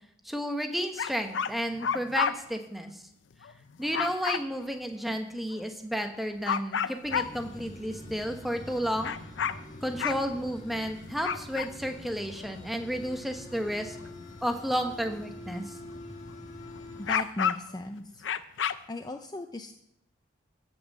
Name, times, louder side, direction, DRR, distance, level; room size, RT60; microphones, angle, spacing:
voice 1, 0.2-3.0 3.8-9.1 9.8-14.0 14.4-15.7, equal, ahead, 5 dB, 0.9 m, -32 dB
sound 1, 1.0-2.3 3.4-4.4 5.5-5.6 6.0-6.1 6.5-7.5 8.1-8.8 9.0-10.8 11.2-11.9 12.4-12.6 13.5-14.1 14.5-14.6 16.9-17.8 18.2-18.7, left 7 dB, 75° left, 0.5 m, -30 dB
sound 2, 7.1-17.2, left 1 dB, 40° left, 1.9 m, -45 dB
voice 2, 17.0-18.2 18.5-19.7, left 1 dB, 20° left, 6 dB, 0.5 m, -38 dB
12.5 x 5.3 x 7.5 m, 0.75 s
head